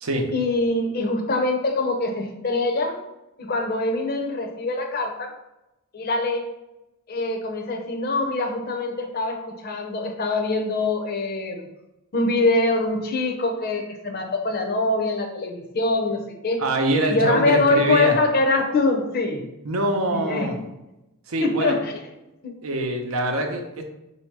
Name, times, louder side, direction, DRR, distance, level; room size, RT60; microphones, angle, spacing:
voice 1, 0.3-3.0 3.4-5.3 5.9-6.4 7.1-11.7 12.1-16.6 17.1-19.4 20.1-20.5 21.4-22.0 22.4-22.6, left 2 dB, 45° left, 4 dB, 0.6 m, -24 dB
voice 2, 16.6-18.2 19.6-20.6 21.3-21.8 22.6-23.8, right 1 dB, 75° right, 4 dB, 0.7 m, -24 dB
4.1 x 2.8 x 4.6 m, 0.95 s
head